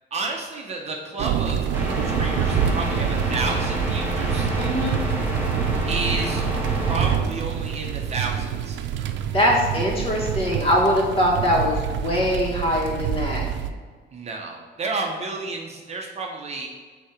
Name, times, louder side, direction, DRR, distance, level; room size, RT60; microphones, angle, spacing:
voice 1, 0.1-1.6 2.2-4.5 5.9-6.4 6.9-8.8 14.1-16.7, right 3 dB, 35° right, 0 dB, 0.8 m, -31 dB
sound 1, 1.2-13.7, right 9 dB, 90° right, 0.5 m, -27 dB
sound 2, 1.7-7.2, equal, 10° right, 1.3 m, -28 dB
voice 2, 4.6-5.0 9.3-13.4, equal, 30° left, -2 dB, 1.6 m, -22 dB
8.2 x 2.8 x 5.9 m, 1.5 s
cardioid pair, 165°, 19 cm